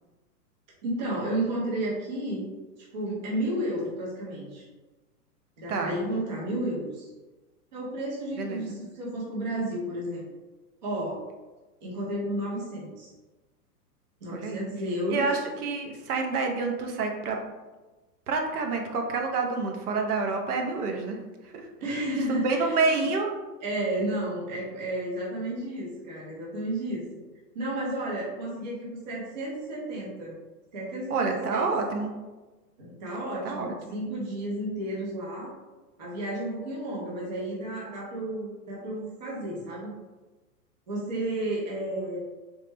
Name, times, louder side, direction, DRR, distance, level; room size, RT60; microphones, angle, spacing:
voice 1, 0.8-2.5 2.8-4.6 5.6-7.1 7.7-10.2 10.8-11.3 11.8-13.1 14.2-15.3 21.8-23.1 23.6-27.2 27.5-30.3 30.7-31.7 32.8-35.5 36.0-39.9 40.9-42.2, right 1 dB, 30° right, -5 dB, 0.4 m, -32 dB
voice 2, 8.4-8.8 14.3-14.7 15.1-17.4 18.3-21.2 21.4-21.7 22.3-23.3 31.1-32.1 33.4-34.0, right 4 dB, 65° right, 3 dB, 0.7 m, -28 dB
3.1 x 2.0 x 3.2 m, 1.2 s
hypercardioid pair, 160°, 49 cm